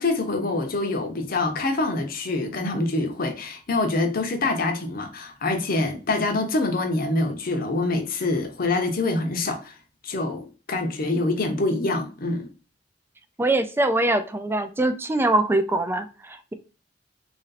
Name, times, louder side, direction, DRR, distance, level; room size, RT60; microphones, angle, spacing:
voice 1, 0.0-9.7 10.0-12.5, left 2 dB, 50° left, 0.7 m, -25 dB
voice 2, 13.4-16.5, right 2 dB, 15° right, 0.3 m, -23 dB
3.1 x 2.6 x 4.0 m
head